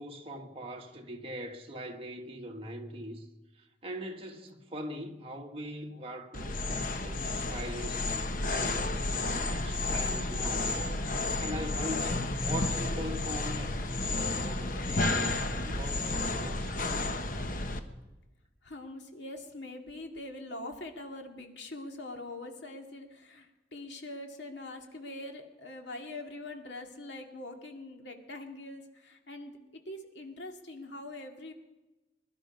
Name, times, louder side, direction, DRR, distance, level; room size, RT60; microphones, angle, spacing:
voice 1, 0.0-3.3 3.6-8.1 8.4-10.8 11.4-15.3 15.6-17.2, equal, 30° right, 1.7 m, -41 dB
sound 1, 6.3-17.8, left 2 dB, 50° left, 1.1 m, -31 dB
voice 2, 18.6-29.6 29.9-31.5, left 2 dB, 75° left, 2.1 m, -43 dB
21.5 x 12.0 x 5.3 m
head